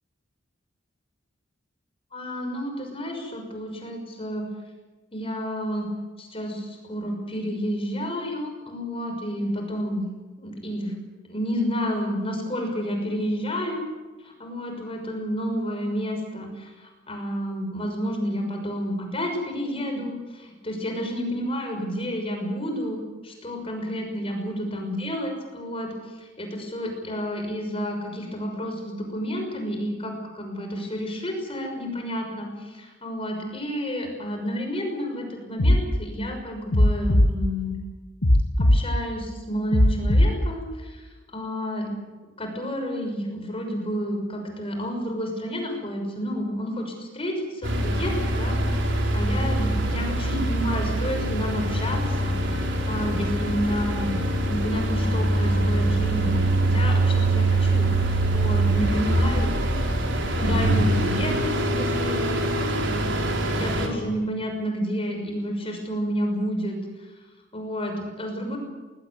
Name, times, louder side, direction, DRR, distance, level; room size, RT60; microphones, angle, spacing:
voice 1, 2.1-4.4 5.1-5.9 6.2-10.0 10.4-10.9 11.3-13.8 14.2-37.8 38.6-41.9 42.4-48.5 49.1-52.6 52.9-54.2 54.5-59.5 60.3-62.6 62.8-63.0 63.5-66.8 67.5-68.6, equal, 30° left, 3 dB, 6.1 m, -30 dB
sound 1, 35.6-35.8 36.7-37.3 38.2-38.8 39.7-40.3, left 1 dB, 80° left, 1.8 m, -17 dB
sound 2, 47.6-63.9, right 1 dB, 65° right, 4.3 m, -24 dB
21.0 x 20.0 x 9.6 m, 1.2 s
head